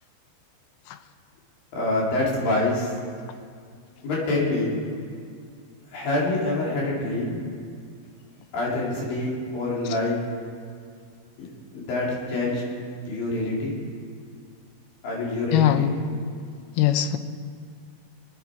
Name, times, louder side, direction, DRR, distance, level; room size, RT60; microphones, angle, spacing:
voice 1, 1.7-2.9 4.0-4.8 5.9-7.4 8.5-10.2 11.4-11.5 11.7-12.6 13.1-13.7 15.0-15.9, left 2 dB, 70° left, -4 dB, 4.5 m, -26 dB
voice 2, 15.5-16.0 16.8-17.2, left 11 dB, 85° left, 10 dB, 2.7 m, -21 dB
25.0 x 8.9 x 4.7 m, 2.2 s
omnidirectional pair, 4.4 m